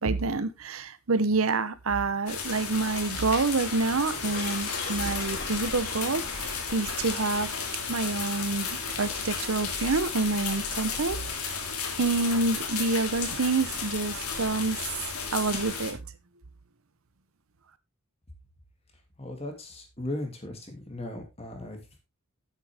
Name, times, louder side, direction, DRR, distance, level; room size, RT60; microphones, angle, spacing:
voice 1, 0.0-7.5 7.9-11.2 11.5-11.7 12.0-15.1 15.3-16.0, right 3 dB, 70° right, 14 dB, 0.8 m, -28 dB
sound 1, 2.3-15.9, left 5 dB, 90° left, 2.7 m, -33 dB
Shatter, 4.1-11.5, left 4 dB, 45° left, 3.6 m, -43 dB
voice 2, 19.2-22.0, left 1 dB, 25° left, 4 dB, 2.5 m, -37 dB
10.0 x 8.3 x 3.5 m, 0.24 s
head